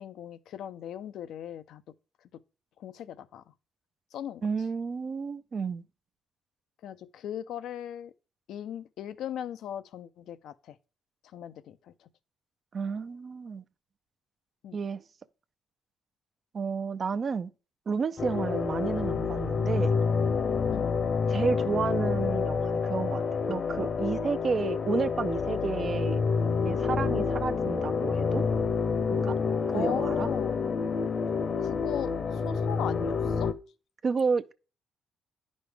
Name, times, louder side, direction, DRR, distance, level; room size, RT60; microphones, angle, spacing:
voice 1, 0.0-1.8 2.8-3.4 4.1-4.5 6.8-8.1 8.5-10.8 11.3-12.1 14.6-14.8 18.3-18.5 20.7-21.0 29.7-30.6 31.6-33.5, left 10 dB, 75° left, 0.5 m, -38 dB
voice 2, 4.4-5.8 12.7-13.6 14.7-15.0 16.5-17.5 17.9-20.0 21.3-23.2 23.5-26.2 26.6-28.4 29.1-29.4 29.7-30.3 34.0-34.5, right 5 dB, 45° right, 0.5 m, -31 dB
sound 1, 18.2-33.5, left 5 dB, 45° left, 0.8 m, -28 dB
10.0 x 5.2 x 3.4 m
cardioid pair, 90°, 0 cm